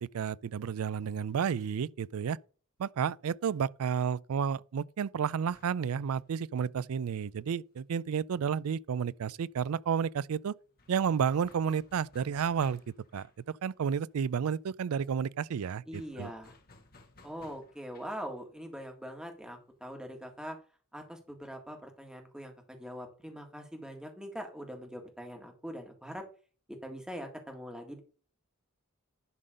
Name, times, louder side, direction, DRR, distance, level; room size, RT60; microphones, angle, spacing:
voice 1, 0.0-2.4 2.8-10.5 10.9-12.8 13.1-16.3, right 7 dB, 75° right, 0.4 m, -31 dB
sound 1, 5.4-8.8 9.1-9.2 9.5-20.5, left 3 dB, 45° left, 1.7 m, -61 dB
voice 2, 15.9-16.5 17.2-20.6 20.9-26.3 26.7-28.0, equal, 5° right, 1.7 m, -43 dB
11.0 x 3.9 x 6.4 m
head